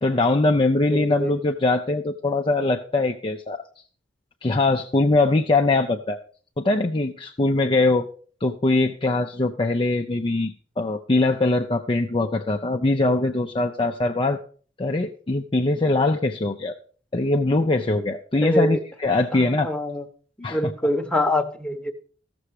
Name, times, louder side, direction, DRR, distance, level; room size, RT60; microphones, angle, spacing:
voice 1, 0.0-3.6 4.4-6.2 6.6-8.1 8.4-14.4 14.8-16.8 17.1-19.7 20.4-20.7, left 2 dB, 30° left, 3 dB, 0.5 m, -22 dB
voice 2, 0.9-1.3 18.4-18.8 19.4-20.0 20.4-21.9, left 1 dB, 5° left, 4 dB, 1.0 m, -25 dB
14.5 x 6.9 x 4.8 m, 0.43 s
head